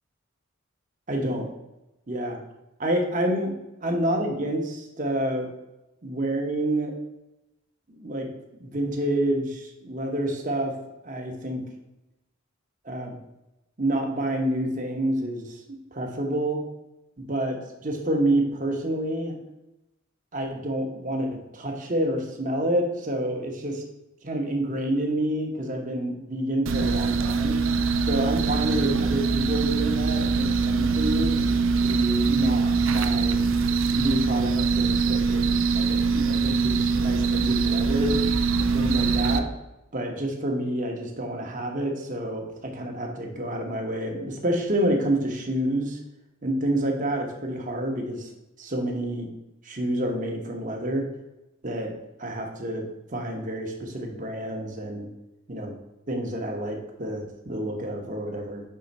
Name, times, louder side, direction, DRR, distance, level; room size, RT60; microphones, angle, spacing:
voice 1, 1.1-1.5 2.1-2.4 2.8-3.5 3.8-5.5 6.0-6.9 7.9-8.3 8.6-10.7 11.0-11.6 12.8-13.2 13.8-16.6 17.2-19.4 20.3-23.8 24.2-27.6 28.0-31.3 31.8-33.4 33.9-38.2 38.6-39.5 39.9-46.0 46.4-48.3 48.6-49.3 49.6-51.0 51.6-51.9 52.2-55.1 55.5-55.7 56.1-58.6, right 1 dB, 40° right, 2 dB, 1.1 m, -28 dB
sound 1, 26.7-39.4, right 4 dB, 70° right, 0.5 m, -23 dB
5.6 x 3.8 x 5.3 m, 0.94 s
head